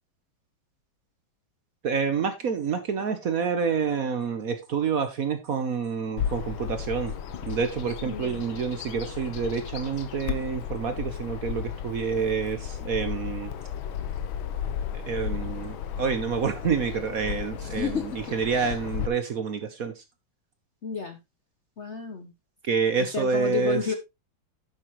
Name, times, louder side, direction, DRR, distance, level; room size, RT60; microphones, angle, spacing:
voice 1, 1.8-7.1 7.5-13.5 15.1-20.0 22.6-23.8, right 6 dB, 55° right, 1.2 m, -28 dB
Bird vocalization bird call bird song, 6.2-19.1, left 8 dB, 90° left, 1.7 m, -34 dB
voice 2, 8.0-8.4 17.6-18.8 20.8-21.2 21.8-22.3 23.0-23.9, left 6 dB, 50° left, 0.9 m, -32 dB
10.0 x 7.2 x 3.0 m
omnidirectional pair, 2.2 m